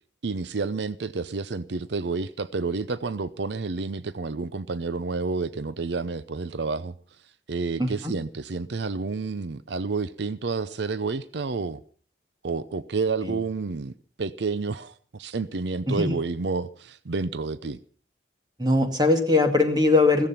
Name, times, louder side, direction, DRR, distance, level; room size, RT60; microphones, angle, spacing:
voice 1, 0.2-6.9 7.5-11.8 12.4-17.8, right 4 dB, 80° right, 0.6 m, -30 dB
voice 2, 7.8-8.1 13.2-13.4 15.9-16.2 18.6-20.3, left 2 dB, 25° right, 2.2 m, -21 dB
15.5 x 14.5 x 5.8 m
head